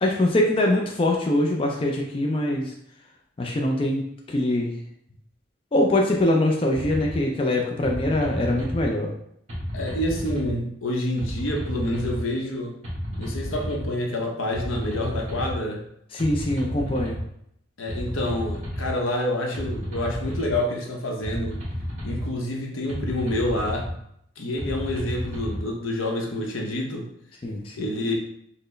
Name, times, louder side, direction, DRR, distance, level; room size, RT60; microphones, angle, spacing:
voice 1, 0.0-2.7 3.4-4.0 4.3-4.7 5.7-9.1 16.1-17.2 27.4-27.7, left 1 dB, 25° left, 0 dB, 0.3 m, -23 dB
sound 1, 6.8-7.2 7.8-8.9 9.5-10.5 11.2-12.2 12.8-13.9 14.5-15.6 16.2-17.2 17.9-18.9 19.5-20.6 21.2-22.3 22.9-23.9 24.6-25.6, equal, 35° right, 1.3 m, -32 dB
voice 2, 9.7-12.7 13.2-15.8 17.8-21.6 22.0-23.9 24.4-27.1 27.8-28.1, left 1 dB, 85° left, 1 dB, 0.7 m, -28 dB
4.3 x 2.0 x 3.1 m, 0.72 s
head